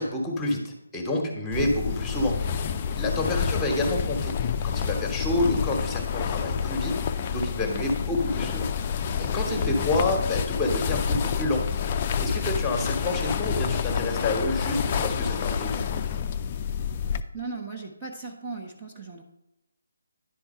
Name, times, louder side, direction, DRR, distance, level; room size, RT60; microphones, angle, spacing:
voice 1, 0.0-2.3 3.0-4.3 4.6-6.9 7.3-8.7 9.1-11.6 12.2-15.8, left 2 dB, 10° left, 2 dB, 1.2 m, -28 dB
sound 1, 1.5-17.2, left 7 dB, 25° left, 0.4 m, -28 dB
voice 2, 17.3-19.2, right 4 dB, 15° right, -3 dB, 1.0 m, -37 dB
10.5 x 4.5 x 5.5 m, 0.92 s
figure-of-eight pair, 150°, 0 cm